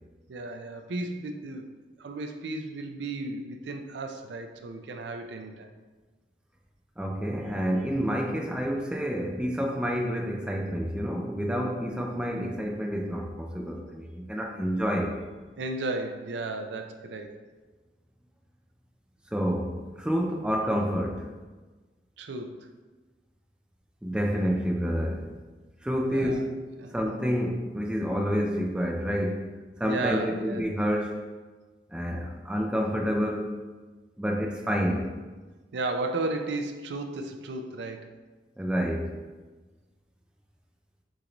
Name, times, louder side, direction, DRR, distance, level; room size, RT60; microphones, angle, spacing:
voice 1, 0.3-1.7 2.0-5.7 15.6-17.4 22.2-22.7 26.1-26.4 26.8-26.9 29.8-30.7 35.7-38.2, right 2 dB, 75° right, 5 dB, 0.4 m, -34 dB
voice 2, 7.0-15.2 19.3-21.3 24.0-25.3 25.8-26.6 26.9-29.5 29.8-31.2 31.9-33.5 34.2-35.1 38.6-39.2, equal, 5° right, 1 dB, 0.4 m, -28 dB
6.3 x 2.6 x 2.9 m, 1.3 s
head